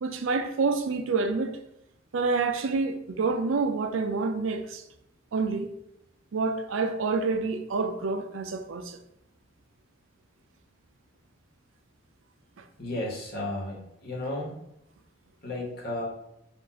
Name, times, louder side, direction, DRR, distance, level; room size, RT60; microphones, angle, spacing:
voice 1, 0.0-1.6 2.1-4.8 5.3-5.7 6.3-9.0, right 4 dB, 85° right, 0.5 m, -28 dB
voice 2, 12.8-14.5 15.4-16.0, left 1 dB, 50° left, 1.2 m, -33 dB
4.4 x 2.5 x 4.1 m
head